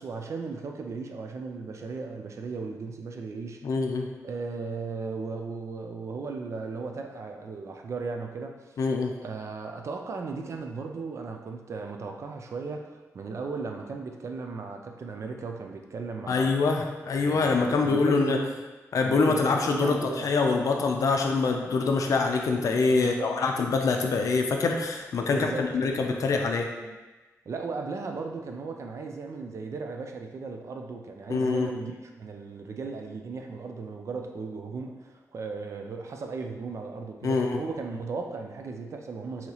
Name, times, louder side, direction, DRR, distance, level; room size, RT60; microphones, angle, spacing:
voice 1, 0.0-3.6 4.2-8.6 9.2-16.5 17.2-18.5 19.0-20.3 22.9-23.3 25.3-25.7 26.8-27.0 27.5-31.9 32.2-39.5, right 4 dB, 55° right, 3 dB, 0.4 m, -36 dB
voice 2, 3.6-4.1 8.8-9.1 16.3-18.4 18.9-26.7 31.3-31.7 37.2-37.6, left 4 dB, 70° left, 2 dB, 0.4 m, -25 dB
3.9 x 2.8 x 2.9 m, 1.2 s
wide cardioid pair, 110°, 6 cm